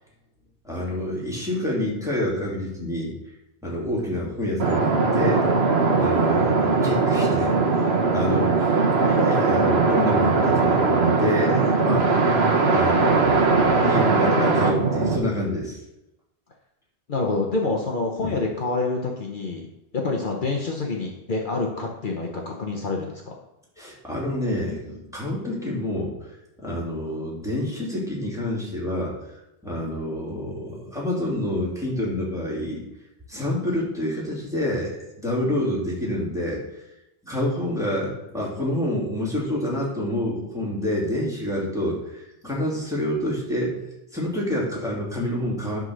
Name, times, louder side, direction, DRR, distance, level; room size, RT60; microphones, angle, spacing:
voice 1, 0.6-3.1 3.6-5.4 5.9-8.5 9.0-12.1 12.7-15.8 18.2-18.3 23.8-26.1 26.6-29.1 29.6-32.8 33.3-36.6 37.3-43.9 44.1-45.8, left 1 dB, 5° right, -5 dB, 2.6 m, -28 dB
sound 1, 4.6-15.2, right 4 dB, 85° right, 1.3 m, -20 dB
voice 2, 17.1-19.7 19.9-23.3, left 3 dB, 55° left, 0 dB, 1.1 m, -27 dB
10.5 x 4.0 x 6.4 m, 0.89 s
omnidirectional pair, 1.0 m